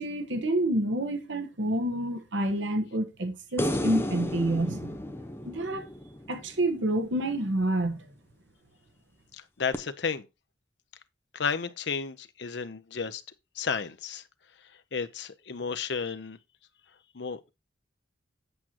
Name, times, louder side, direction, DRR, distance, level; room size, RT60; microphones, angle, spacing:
voice 1, 0.0-5.0 5.4-5.9 6.3-8.0, right 1 dB, 70° right, 1.3 m, -28 dB
sound 1, 3.6-6.9 9.7-9.8, equal, 10° left, 0.8 m, -33 dB
voice 2, 9.3-10.3 11.3-13.2 13.6-14.2 14.9-16.4 17.1-17.5, left 5 dB, 60° left, 0.7 m, -32 dB
8.2 x 7.6 x 2.9 m
head